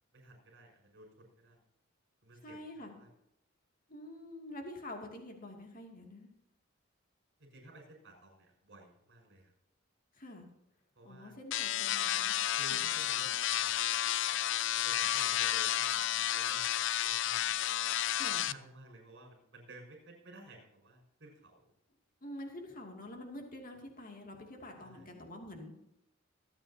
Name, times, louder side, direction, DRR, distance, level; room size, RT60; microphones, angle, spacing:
voice 1, 0.1-1.6 2.2-3.1 7.4-9.5 11.0-11.4 12.5-14.0 14.8-16.7 17.0-17.6 18.4-21.7 24.8-25.1, right 2 dB, 60° right, 1 dB, 5.9 m, -54 dB
voice 2, 2.4-2.9 3.9-6.3 10.1-10.5 11.0-12.4 12.7-12.8 18.1-18.5 22.2-25.7, left 1 dB, 45° left, 2 dB, 2.6 m, -47 dB
sound 1, 11.5-18.5, left 12 dB, 65° left, 0.5 m, -31 dB
25.5 x 8.8 x 2.9 m, 0.86 s
head